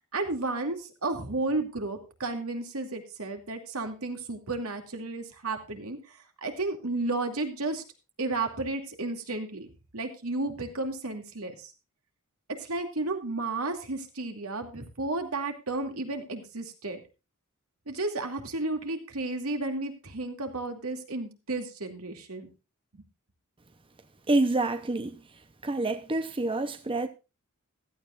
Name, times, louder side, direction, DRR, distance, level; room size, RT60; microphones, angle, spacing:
voice 1, 0.1-6.0 6.4-7.8 8.2-11.7 12.6-17.0 17.9-22.5 22.9-23.0, right 2 dB, 80° right, 2.5 m, -33 dB
voice 2, 24.3-25.1 25.6-27.1, right 2 dB, 25° right, 0.8 m, -27 dB
15.5 x 13.0 x 2.5 m
head